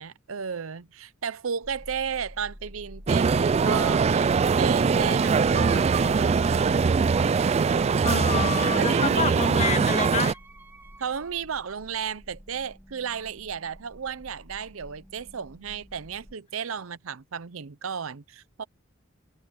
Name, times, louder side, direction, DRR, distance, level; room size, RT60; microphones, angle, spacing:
voice 1, 0.0-7.0 7.6-8.2 8.8-9.6 11.0-18.6, right 6 dB, 70° right, 0.7 m, -34 dB
sound 1, 1.6-16.4, equal, 10° left, 2.5 m, -47 dB
sound 2, 3.1-10.3, right 5 dB, 30° right, 0.3 m, -22 dB
Wind instrument woodwind instrument, 7.1-11.4, right 3 dB, 10° right, 2.7 m, -50 dB
voice 2, 8.0-10.4, left 4 dB, 35° left, 2.0 m, -28 dB
head